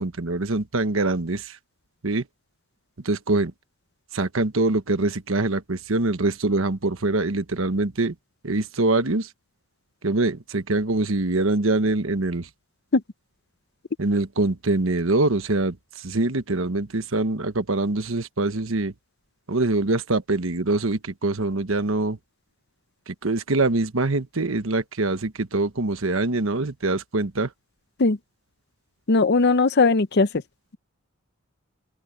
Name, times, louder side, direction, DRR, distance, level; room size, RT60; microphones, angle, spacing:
voice 1, 0.0-1.6 2.0-2.2 3.0-3.5 4.1-8.1 8.4-9.3 10.0-12.5 14.0-18.9 19.5-22.2 23.1-27.5, right 2 dB, 75° right, 1.2 m, -24 dB
voice 2, 29.1-30.4, left 3 dB, 55° left, 0.7 m, -19 dB
open air
head